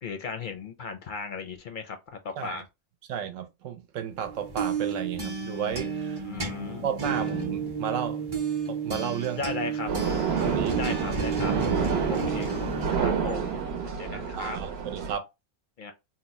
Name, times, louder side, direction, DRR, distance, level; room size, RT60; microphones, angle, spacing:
voice 1, 0.0-2.6 6.2-6.8 9.3-9.9 10.8-11.5 12.1-13.6 14.0-14.6 15.8-15.9, left 4 dB, 55° left, 0.6 m, -36 dB
voice 2, 3.1-6.2 6.8-8.3 8.7-9.5 10.3-10.9 14.1-15.3, right 8 dB, 85° right, 1.0 m, -33 dB
sound 1, 4.2-13.9, right 4 dB, 25° right, 0.6 m, -32 dB
sound 2, 9.9-15.1, right 7 dB, 65° right, 0.8 m, -29 dB
2.8 x 2.1 x 4.0 m
omnidirectional pair, 1.3 m